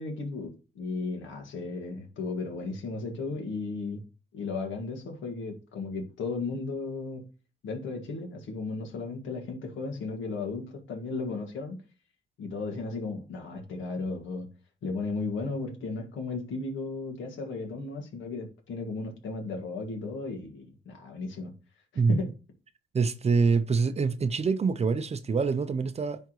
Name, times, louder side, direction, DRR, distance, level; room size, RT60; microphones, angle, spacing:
voice 1, 0.0-4.0 4.3-7.2 7.6-11.8 12.4-14.5 14.8-21.5 22.1-22.3, left 3 dB, 75° left, 1.9 m, -35 dB
voice 2, 22.9-26.2, right 5 dB, 30° right, 0.6 m, -25 dB
10.0 x 3.6 x 3.1 m
cardioid pair, 90°, 20 cm